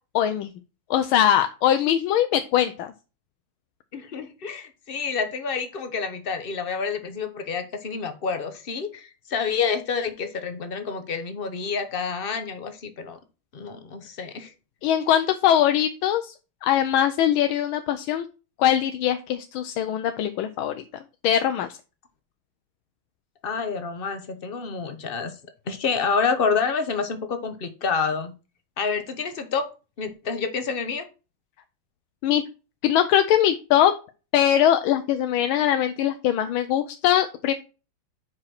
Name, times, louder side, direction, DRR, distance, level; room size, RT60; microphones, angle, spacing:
voice 1, 0.1-0.5 0.9-2.9 14.8-16.3 16.6-18.3 18.6-20.8 21.2-21.8 32.2-32.4 32.8-33.9 34.3-37.5, left 10 dB, 80° left, 8 dB, 1.4 m, -21 dB
voice 2, 3.9-13.2 13.5-14.5 23.4-25.3 25.7-28.3 28.8-29.7 30.0-31.0, left 5 dB, 45° left, 8 dB, 0.7 m, -28 dB
6.1 x 4.9 x 5.8 m, 0.32 s
omnidirectional pair, 2.3 m